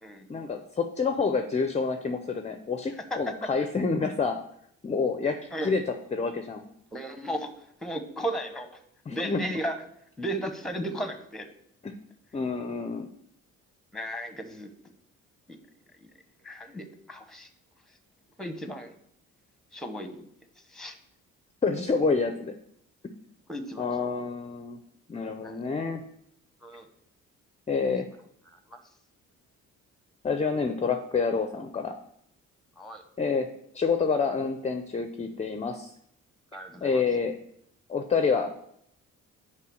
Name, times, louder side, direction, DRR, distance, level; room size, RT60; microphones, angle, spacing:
voice 1, 0.3-4.4 4.8-5.8 6.1-6.7 9.1-9.4 11.8-12.0 12.3-13.1 21.6-22.5 23.8-24.8 25.1-26.0 27.7-28.1 30.2-32.0 33.2-33.5 33.7-35.9 36.5-37.4 37.9-38.5, left 4 dB, 20° left, 8 dB, 0.5 m, -28 dB
voice 2, 6.9-7.5 7.8-8.7 9.1-9.8 10.2-11.5 13.9-14.7 16.4-17.5 18.4-18.9 19.7-20.2 20.7-21.0 23.5-23.9 25.4-25.6 26.6-26.9 28.7-28.8 32.8-33.0 36.5-37.0, right 1 dB, ahead, 8 dB, 0.9 m, -34 dB
5.7 x 4.9 x 6.2 m, 0.71 s
cardioid pair, 90°, 30 cm